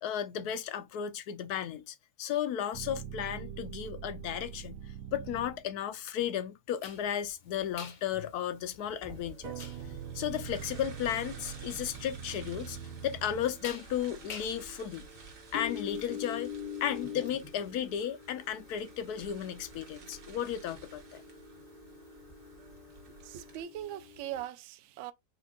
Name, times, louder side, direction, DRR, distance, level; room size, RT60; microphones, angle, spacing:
voice 1, 0.0-4.8 5.1-9.6 10.1-12.8 13.0-15.1 15.5-16.5 16.8-21.2, left 9 dB, 75° left, 1.1 m, -34 dB
sound 1, 2.7-5.9 9.4-14.0, right 8 dB, 85° right, 1.2 m, -43 dB
sound 2, 6.8-24.4, left 7 dB, 50° left, 0.5 m, -46 dB
sound 3, 9.0-23.6, right 4 dB, 55° right, 1.5 m, -51 dB
voice 2, 23.2-25.1, right 12 dB, 70° right, 0.7 m, -40 dB
4.5 x 2.3 x 3.6 m
omnidirectional pair, 1.7 m